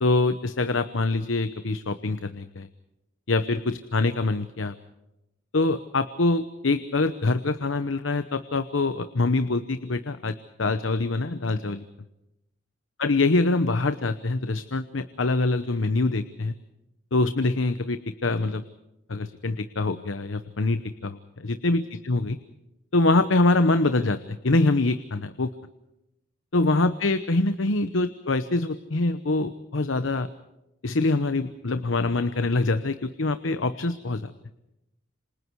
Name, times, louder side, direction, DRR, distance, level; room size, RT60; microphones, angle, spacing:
voice 1, 0.0-2.7 3.3-4.7 5.5-11.8 13.0-16.5 17.1-18.6 19.1-22.4 22.9-25.5 26.5-30.3 30.8-34.3, left 2 dB, 85° left, 11 dB, 1.0 m, -24 dB
28.0 x 26.0 x 4.7 m, 0.88 s
head